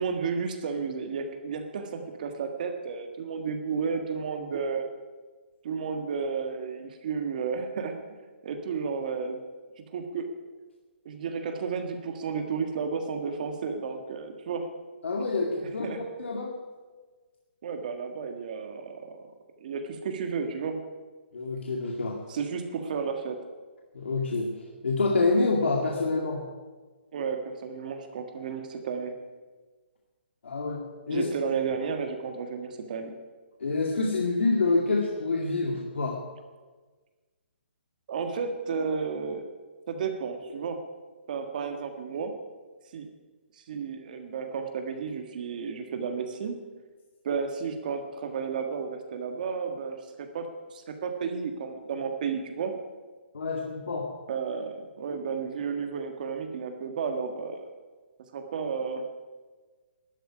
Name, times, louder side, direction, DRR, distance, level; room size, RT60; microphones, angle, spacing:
voice 1, 0.0-4.9 5.6-8.0 8.4-9.4 9.9-10.3 11.0-14.7 15.6-16.0 17.6-19.3 19.6-20.8 22.3-23.4 27.1-29.1 31.1-33.1 38.1-39.5 39.9-40.8 41.3-42.4 42.9-43.1 43.6-46.6 47.2-52.7 54.3-57.7 58.3-59.1, right 5 dB, 45° right, 6 dB, 1.6 m, -32 dB
voice 2, 15.0-15.9 16.2-16.5 21.3-22.2 23.9-24.5 24.8-26.4 30.4-31.3 33.6-36.2 53.3-54.1, left 3 dB, 85° left, 0 dB, 2.2 m, -27 dB
12.5 x 9.2 x 9.9 m, 1.4 s
hypercardioid pair, 165°, 6 cm